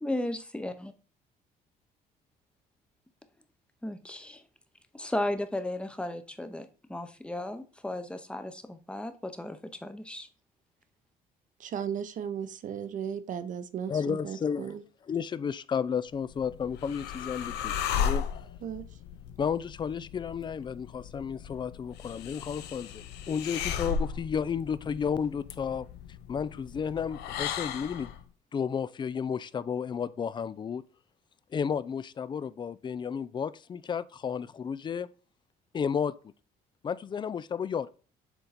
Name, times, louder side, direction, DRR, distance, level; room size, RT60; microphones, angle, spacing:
voice 1, 0.0-0.9 3.8-4.4 4.9-10.3, left 1 dB, 5° left, 0.8 m, -35 dB
voice 2, 11.6-14.8 18.6-18.8, right 8 dB, 50° right, 0.8 m, -36 dB
voice 3, 13.9-14.6 15.1-18.2 19.4-25.9 26.3-28.1 28.5-30.8 31.5-35.1 35.7-36.1 36.8-37.9, left 7 dB, 25° left, 0.4 m, -32 dB
sound 1, 16.2-28.2, left 7 dB, 80° left, 0.7 m, -36 dB
6.9 x 3.8 x 4.1 m
cardioid pair, 110°, 17 cm